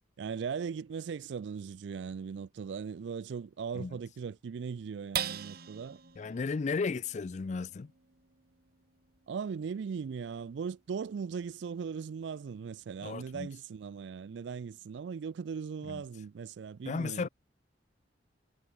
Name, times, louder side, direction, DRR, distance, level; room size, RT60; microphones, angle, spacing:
voice 1, 0.2-6.0 9.3-17.3, right 6 dB, 75° right, 0.4 m, -39 dB
sound 1, 5.1-11.8 12.3-12.4 12.8-13.3, right 9 dB, 55° right, 1.5 m, -43 dB
voice 2, 6.2-7.9 13.0-13.5 15.8-16.0 16.8-17.3, left 4 dB, 40° left, 0.4 m, -34 dB
head